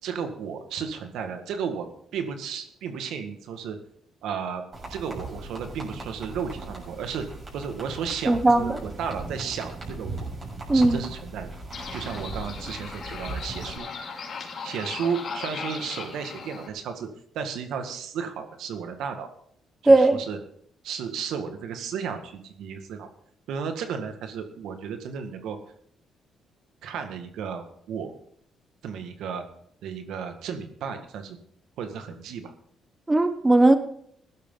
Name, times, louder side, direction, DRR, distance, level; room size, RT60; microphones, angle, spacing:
voice 1, 0.0-1.9 2.1-3.8 4.2-4.6 4.9-7.3 7.5-10.1 10.7-11.5 11.9-13.9 14.6-17.1 17.3-19.3 19.8-20.4 20.8-23.1 23.5-25.6 26.8-28.1 28.8-29.4 29.8-31.4 31.8-32.5, right 6 dB, 80° right, 7 dB, 1.9 m, -33 dB
sound 1, 4.7-13.8, right 2 dB, 35° right, 6.9 m, -38 dB
voice 2, 8.3-8.8 10.7-11.0 19.9-20.2 33.1-33.8, right 2 dB, 15° right, 10 dB, 1.1 m, -17 dB
sound 2, 11.7-16.7, left 5 dB, 55° left, 3.2 m, -37 dB
16.0 x 12.0 x 4.0 m, 0.67 s
cardioid pair, 90°, 0 cm